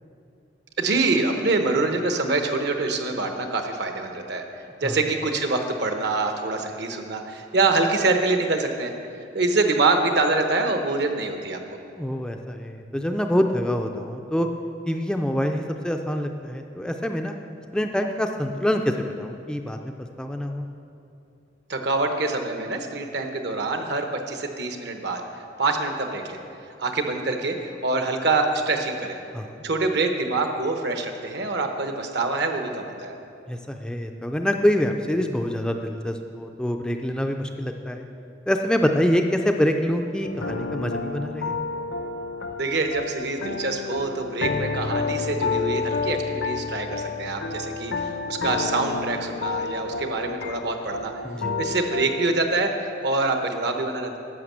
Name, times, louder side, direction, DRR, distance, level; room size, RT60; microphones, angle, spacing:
voice 1, 0.8-8.9 9.3-11.6 21.7-25.2 25.6-26.4 26.8-29.2 29.6-33.1 42.5-51.1 51.6-54.2, right 3 dB, 65° right, 5 dB, 1.0 m, -25 dB
voice 2, 12.0-14.5 14.9-17.3 17.7-20.7 29.3-29.6 33.5-38.1 38.5-41.6 51.2-51.6, equal, 5° left, 4 dB, 0.4 m, -25 dB
sound 1, 40.2-52.3, left 4 dB, 60° left, 0.7 m, -30 dB
11.0 x 6.2 x 7.4 m, 2.6 s
head